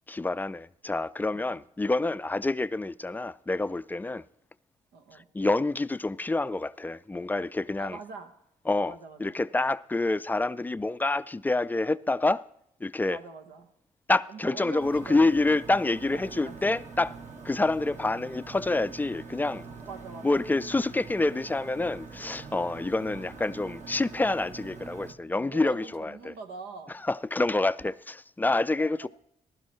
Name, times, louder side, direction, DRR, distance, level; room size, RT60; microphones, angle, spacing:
voice 1, 0.1-4.2 5.3-8.0 8.7-8.9 9.2-12.4 12.8-13.2 14.1-17.1 17.4-19.6 20.2-26.3 27.1-29.1, left 2 dB, 10° left, 0.3 m, -27 dB
voice 2, 1.3-1.6 4.9-5.3 7.8-8.3 8.9-9.4 13.1-13.7 14.3-15.5 16.1-16.8 19.8-20.4 25.2-27.0 27.6-27.9 28.8-29.1, right 4 dB, 90° right, 1.0 m, -44 dB
sound 1, 14.8-25.1, right 4 dB, 50° right, 1.5 m, -44 dB
15.0 x 11.5 x 3.1 m
supercardioid pair, 60°, 15 cm